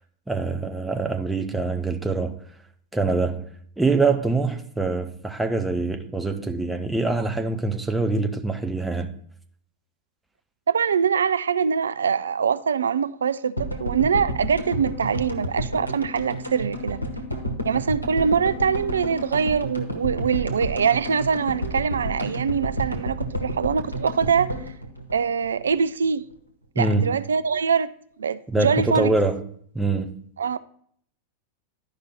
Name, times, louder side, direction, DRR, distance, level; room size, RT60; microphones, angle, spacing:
voice 1, 0.3-2.4 2.9-3.5 3.8-9.1 26.8-27.2 28.5-29.4 29.7-30.2, right 3 dB, 5° right, 0.7 m, -24 dB
voice 2, 10.7-17.0 17.6-24.5 25.1-26.2 26.8-27.9 28.2-29.1 30.4-30.6, right 6 dB, 70° right, 0.3 m, -23 dB
sound 1, 13.6-25.8 26.0-26.1 26.3-26.4, equal, 85° left, 1.1 m, -31 dB
11.5 x 5.2 x 4.3 m
figure-of-eight pair, 90°, 0 cm